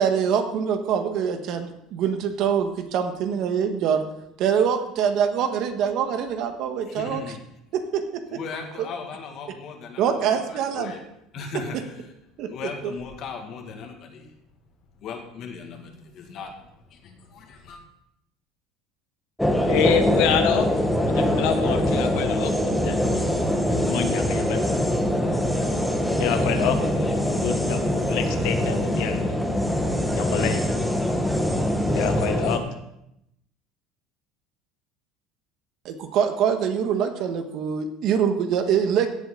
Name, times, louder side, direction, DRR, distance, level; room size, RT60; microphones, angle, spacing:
voice 1, 0.0-4.0 4.4-7.4 7.9-8.0 8.3-8.4 8.8-8.9 10.0-10.9 12.4-12.9 35.8-39.1, right 7 dB, 55° right, 7 dB, 1.3 m, -24 dB
voice 2, 6.9-7.4 8.3-10.0 10.5-11.0 11.3-11.8 12.5-14.3 15.0-16.5 16.9-17.8, left 5 dB, 45° left, 3 dB, 2.0 m, -37 dB
sound 1, 19.4-32.6, equal, ahead, 1.1 m, -23 dB
voice 3, 19.7-20.7 21.1-23.4 23.7-24.7 26.2-29.4 30.2-30.6 31.9-32.6, left 9 dB, 70° left, 7 dB, 1.1 m, -27 dB
16.5 x 7.6 x 3.9 m, 0.81 s
cardioid pair, 150°, 0 cm